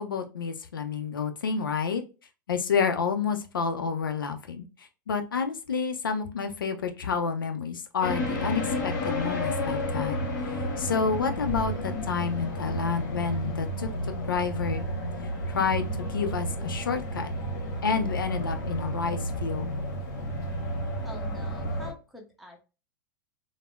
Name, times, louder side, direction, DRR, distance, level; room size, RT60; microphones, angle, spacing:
voice 1, 0.0-2.0 2.5-10.2 10.5-13.9 14.3-14.9 15.5-17.3 17.8-19.7, left 5 dB, 80° left, 8 dB, 0.5 m, -29 dB
sound 1, 8.0-21.9, equal, 60° left, 1.0 m, -31 dB
voice 2, 21.0-22.6, left 2 dB, ahead, 1 dB, 0.8 m, -45 dB
3.3 x 2.1 x 2.2 m, 0.31 s
hypercardioid pair, 95°, 11 cm